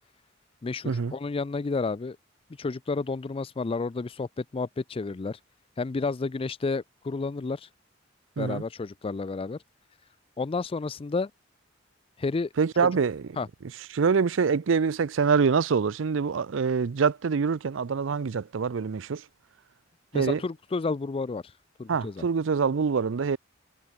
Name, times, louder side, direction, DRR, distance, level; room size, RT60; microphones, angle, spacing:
voice 1, 0.6-2.2 2.6-5.4 5.8-7.7 8.4-9.6 10.4-11.3 12.2-12.5 12.8-12.9 13.4-13.5 20.1-21.4 21.8-22.2, left 4 dB, 30° left, 0.4 m, -31 dB
voice 2, 12.6-13.3 13.9-19.2 20.1-20.4 21.9-23.4, right 5 dB, 70° right, 0.5 m, -25 dB
head